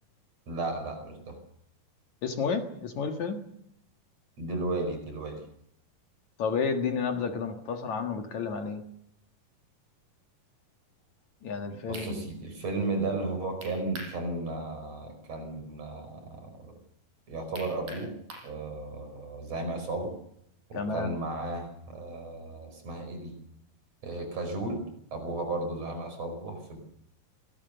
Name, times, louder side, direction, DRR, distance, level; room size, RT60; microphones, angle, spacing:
voice 1, 0.5-1.4 4.4-5.4 11.9-16.7 17.3-18.1 18.4-20.1 20.7-23.3 24.0-24.8 25.1-26.8, right 2 dB, 45° right, 6 dB, 6.3 m, -34 dB
voice 2, 2.2-3.4 6.4-8.8 11.4-12.3 20.7-21.2, left 5 dB, 60° left, 5 dB, 2.9 m, -31 dB
sound 1, 11.9-12.1 13.6-14.2 14.6-14.7 17.5-18.5, right 1 dB, 90° right, 6.8 m, -42 dB
24.5 x 19.0 x 6.8 m, 0.75 s
omnidirectional pair, 4.0 m